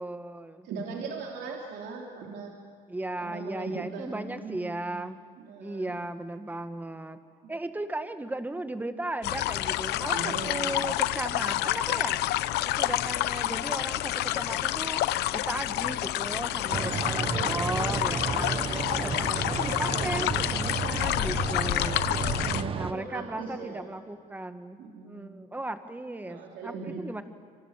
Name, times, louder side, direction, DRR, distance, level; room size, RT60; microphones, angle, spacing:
voice 1, 0.0-0.7 2.9-5.2 5.6-7.2 7.5-12.2 12.6-22.1 22.8-24.8 25.0-27.2, right 2 dB, 10° right, 9 dB, 1.7 m, -36 dB
voice 2, 0.6-2.6 3.2-5.1 5.4-5.9 7.4-7.5 10.0-10.9 16.7-17.6 22.1-23.9 24.8-25.4 26.3-27.2, right 4 dB, 75° right, -1 dB, 3.5 m, -40 dB
sound 1, 9.2-22.6, left 15 dB, 80° left, 0.8 m, -29 dB
sound 2, 16.7-22.9, right 6 dB, 35° right, 1.1 m, -32 dB
27.0 x 26.5 x 7.4 m, 2.1 s
cardioid pair, 110°, 17 cm